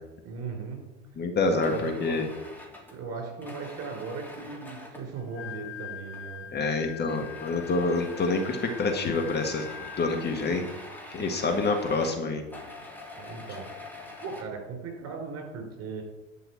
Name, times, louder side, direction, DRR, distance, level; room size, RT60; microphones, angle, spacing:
voice 1, 0.2-0.8 1.5-2.3 2.9-6.7 7.0-7.3 13.2-13.7 14.2-16.0, right 4 dB, 40° right, 2 dB, 5.0 m, -38 dB
voice 2, 1.2-2.3 6.5-9.7 10.0-10.6 11.1-12.4, left 3 dB, 25° left, 4 dB, 1.8 m, -27 dB
sound 1, 1.6-5.1 6.1-6.5 6.8-14.4, left 1 dB, 5° left, 3.1 m, -45 dB
Wind instrument woodwind instrument, 5.2-10.5, left 9 dB, 60° left, 4.0 m, -43 dB
11.0 x 5.7 x 8.5 m, 1.0 s
hypercardioid pair, 90°, 37 cm